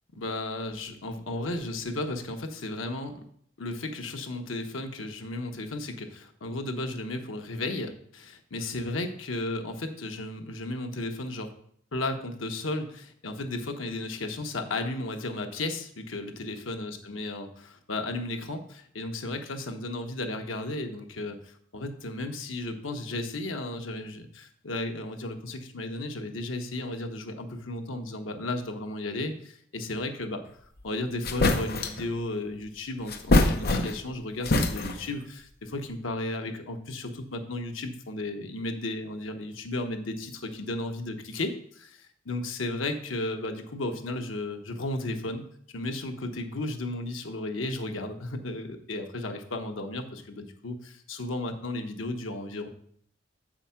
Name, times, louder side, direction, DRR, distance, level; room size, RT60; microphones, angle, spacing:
voice 1, 0.1-3.2 3.6-11.5 11.9-30.4 30.8-45.5 45.7-52.7, left 2 dB, 90° left, 5 dB, 1.0 m, -34 dB
sound 1, 30.8-30.9 31.2-32.1 33.1-34.1 34.4-35.2, left 2 dB, 50° left, 0.8 m, -24 dB
7.3 x 4.9 x 5.7 m, 0.64 s
head